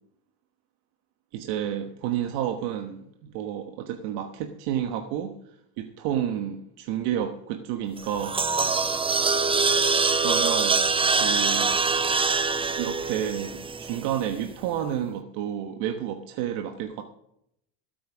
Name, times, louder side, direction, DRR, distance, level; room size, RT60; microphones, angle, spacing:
voice 1, 1.3-5.4 5.8-8.4 10.2-10.8 11.1-11.7 12.7-17.0, right 10 dB, 70° right, 6 dB, 1.3 m, -30 dB
sound 1, 8.0-14.3, right 4 dB, 15° right, 0.5 m, -24 dB
13.5 x 8.4 x 6.1 m, 0.77 s
supercardioid pair, 95°, 42 cm